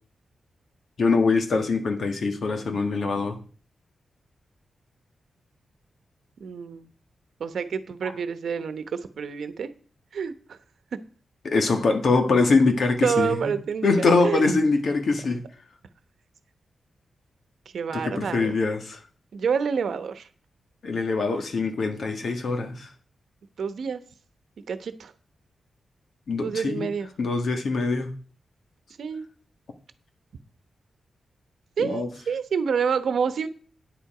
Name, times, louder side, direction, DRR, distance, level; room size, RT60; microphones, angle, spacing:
voice 1, 1.0-3.4 11.5-13.5 13.8-15.4 18.1-19.0 20.8-22.9 26.3-26.9 27.2-28.1 31.8-32.1, left 3 dB, 60° left, 1.7 m, -23 dB
voice 2, 6.4-6.9 7.4-9.7 10.1-10.6 13.0-14.8 17.7-18.6 19.3-20.3 23.6-24.0 24.7-25.1 26.4-27.1 29.0-29.3 31.8-33.5, right 6 dB, 75° right, 1.0 m, -28 dB
9.9 x 8.4 x 4.9 m
wide cardioid pair, 115°, 0 cm